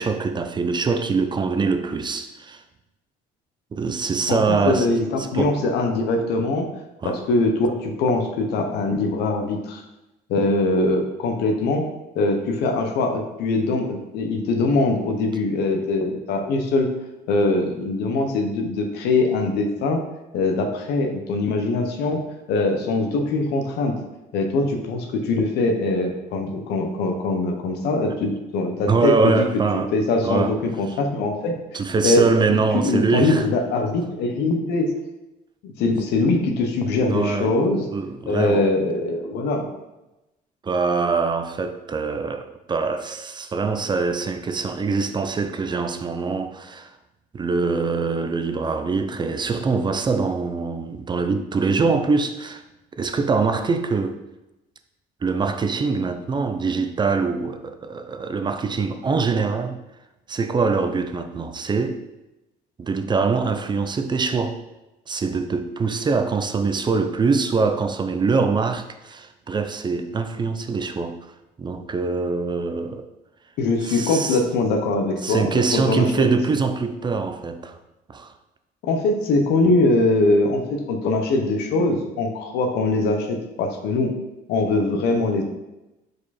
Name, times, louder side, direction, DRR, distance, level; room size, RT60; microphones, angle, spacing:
voice 1, 0.0-2.6 3.7-5.0 5.3-5.6 7.0-7.2 28.9-29.9 30.2-30.5 31.7-33.4 37.0-37.5 37.9-38.7 40.6-46.9 47.3-52.6 53.0-54.2 55.2-59.8 60.3-62.0 62.8-64.6 65.1-71.2 71.6-73.1 73.8-74.4 75.2-77.8 78.1-78.3, right 4 dB, 25° right, 0.5 m, -23 dB
voice 2, 4.3-6.7 7.0-9.8 10.3-11.8 12.1-16.9 17.3-20.0 20.3-22.2 22.5-24.0 24.3-29.5 29.7-31.5 32.0-34.9 35.6-37.9 38.2-39.7 73.6-76.3 78.8-84.1 84.5-85.4, left 2 dB, 80° left, 1.0 m, -22 dB
4.9 x 4.7 x 4.2 m
cardioid pair, 110°, 17 cm